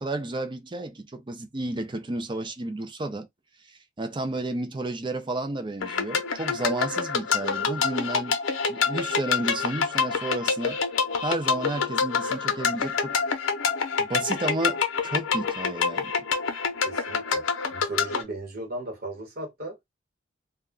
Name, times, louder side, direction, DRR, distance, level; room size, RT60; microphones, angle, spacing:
voice 1, 0.0-3.3 3.7-8.4 8.7-10.8 11.2-13.2 14.0-16.1, right 2 dB, 25° right, 0.5 m, -32 dB
sound 1, 5.8-18.2, left 5 dB, 85° left, 0.6 m, -27 dB
voice 2, 16.8-17.4 17.7-19.8, right 2 dB, 50° right, 1.0 m, -36 dB
2.3 x 2.1 x 3.6 m
head